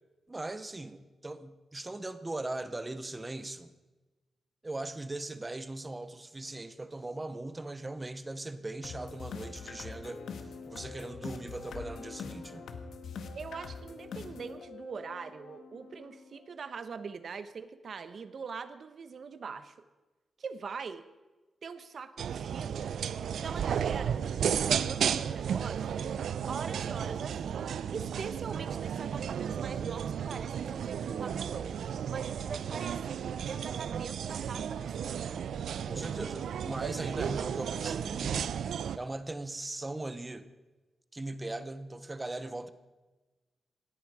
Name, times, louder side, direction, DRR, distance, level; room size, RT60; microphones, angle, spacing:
voice 1, 0.3-3.7 4.6-10.3 10.7-12.7 32.5-32.8 35.9-38.5 39.0-40.5 41.1-42.7, right 2 dB, 15° right, 12 dB, 0.7 m, -39 dB
sound 1, 8.8-16.8, left 5 dB, 80° left, 1.6 m, -44 dB
voice 2, 13.3-19.7 20.4-21.0 21.6-22.9 23.4-24.3 24.5-26.1 26.5-31.8 32.1-35.2, right 5 dB, 45° right, 12 dB, 1.0 m, -42 dB
sound 2, 22.2-39.0, right 8 dB, 75° right, 0.5 m, -33 dB
18.5 x 15.0 x 4.9 m, 1.2 s
wide cardioid pair, 170°, 0 cm